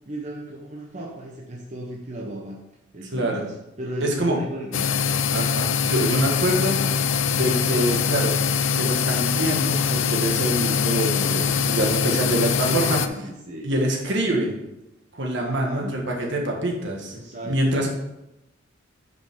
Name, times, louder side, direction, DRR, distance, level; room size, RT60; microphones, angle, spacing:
voice 1, 0.1-2.6 2.9-4.9 12.1-13.7 15.4-16.0 17.1-17.9, right 1 dB, 35° right, -1 dB, 0.9 m, -35 dB
voice 2, 3.1-3.5 4.0-4.4 5.3-6.8 7.3-8.4 8.7-13.0 13.6-14.5 15.1-17.1 17.4-17.9, right 1 dB, 60° right, 1 dB, 1.5 m, -25 dB
sound 1, 4.7-13.1, left 6 dB, 75° left, 0.5 m, -23 dB
9.0 x 5.3 x 3.6 m, 0.90 s
head